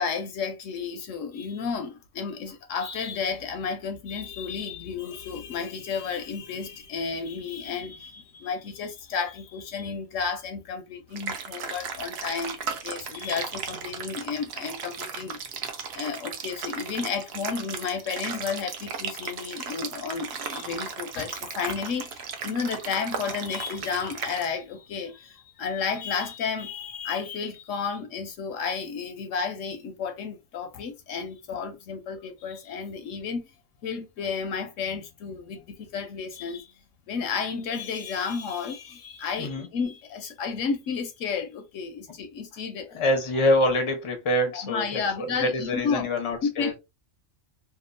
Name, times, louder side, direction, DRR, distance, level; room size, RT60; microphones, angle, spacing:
voice 1, 0.0-15.4 15.9-33.5 33.8-36.7 37.1-42.9 44.5-46.1 46.4-46.8, left 5 dB, 70° left, 0.9 m, -32 dB
sound 1, 11.2-24.5, right 6 dB, 60° right, 0.7 m, -36 dB
voice 2, 42.9-46.7, left 1 dB, 35° left, 0.5 m, -25 dB
2.8 x 2.3 x 2.4 m
omnidirectional pair, 1.5 m